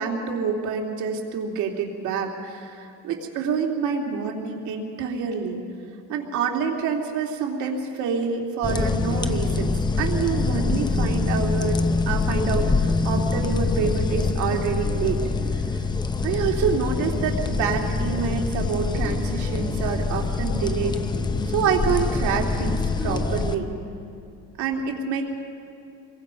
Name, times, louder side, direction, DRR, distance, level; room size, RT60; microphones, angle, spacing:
voice 1, 0.0-5.6 6.1-11.8 12.1-15.2 15.5-15.6 16.2-21.0 21.5-23.7 24.6-25.2, right 6 dB, 70° right, 1 dB, 2.8 m, -27 dB
sound 1, 8.6-23.5, left 3 dB, 15° left, 0.6 m, -25 dB
27.5 x 22.5 x 5.3 m, 2.5 s
cardioid pair, 175°, 31 cm